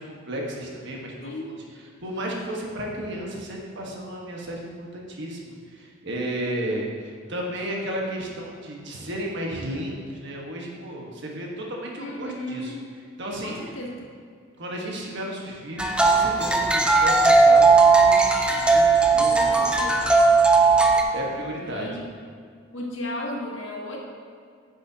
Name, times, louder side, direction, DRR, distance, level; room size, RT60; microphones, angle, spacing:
voice 1, 0.0-1.3 1.7-12.7 13.2-13.6 14.6-20.1 21.1-21.9, right 1 dB, 60° right, -1 dB, 1.4 m, -33 dB
voice 2, 1.2-1.5 12.0-12.9 13.4-13.9 18.5-18.8 19.1-20.2 20.6-20.9 21.6-22.1 22.7-24.0, left 1 dB, 65° left, -2 dB, 1.5 m, -35 dB
sound 1, 15.8-21.0, right 4 dB, 5° right, 0.5 m, -17 dB
9.9 x 7.8 x 2.8 m, 2.2 s
head